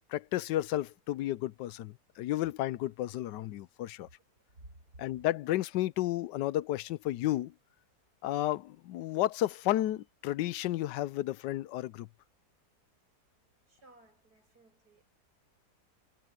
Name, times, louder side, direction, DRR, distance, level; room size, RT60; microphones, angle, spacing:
voice 1, 0.1-4.1 5.0-7.5 8.2-12.1, left 14 dB, 90° left, 1.3 m, -32 dB
voice 2, 13.7-15.0, right 2 dB, 65° right, 8.6 m, -57 dB
omnidirectional pair, 1.8 m